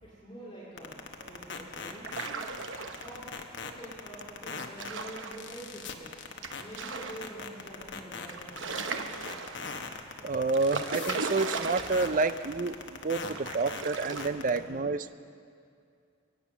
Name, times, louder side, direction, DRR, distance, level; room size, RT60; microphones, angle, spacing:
voice 1, 0.0-2.5 3.0-3.3 3.6-6.1 6.5-9.1 14.5-14.8, right 1 dB, 30° left, -6 dB, 2.5 m, -46 dB
sound 1, 0.8-14.6, left 5 dB, 65° left, 1.1 m, -39 dB
sound 2, 1.9-3.3 4.5-5.6 6.4-7.4 7.9-8.0 8.3-9.8 10.5-12.4 12.7-12.8 13.3-14.3, right 4 dB, 85° right, 0.9 m, -37 dB
voice 2, 10.2-12.7 13.0-15.1, right 3 dB, 45° right, 13 dB, 0.5 m, -29 dB
23.0 x 9.0 x 6.1 m, 2.4 s
head